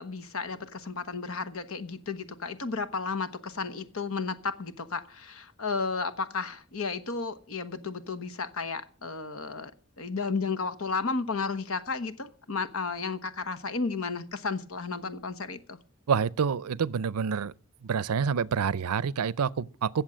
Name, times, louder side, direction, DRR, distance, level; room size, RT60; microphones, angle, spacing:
voice 1, 0.0-9.7 10.0-15.8, left 4 dB, 70° left, 1.2 m, -33 dB
voice 2, 16.1-17.5 17.8-20.0, right 6 dB, 85° right, 0.5 m, -27 dB
16.5 x 7.2 x 6.2 m
head